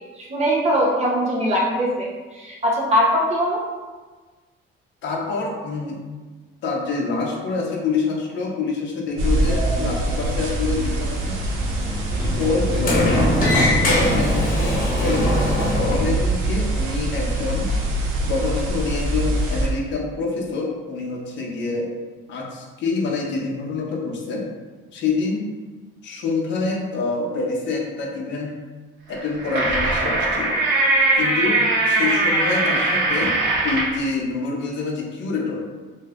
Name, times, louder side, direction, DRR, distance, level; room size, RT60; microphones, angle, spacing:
voice 1, 0.1-3.6, equal, 30° right, -3 dB, 0.6 m, -21 dB
voice 2, 5.0-6.0 6.6-11.3 12.4-13.5 13.8-17.7 18.2-21.9 22.3-24.4 24.9-25.4 26.0-28.5 29.1-30.6 31.2-33.3 33.6-35.6, left 3 dB, 60° left, -1 dB, 0.6 m, -26 dB
Sliding door, 9.1-16.1, left 1 dB, 45° left, 1.1 m, -24 dB
sound 1, 9.2-19.7, right 1 dB, 80° right, 0.6 m, -24 dB
sound 2, 29.1-34.0, right 2 dB, 60° right, 1.0 m, -20 dB
2.6 x 2.3 x 3.4 m, 1.3 s
cardioid pair, 155°, 21 cm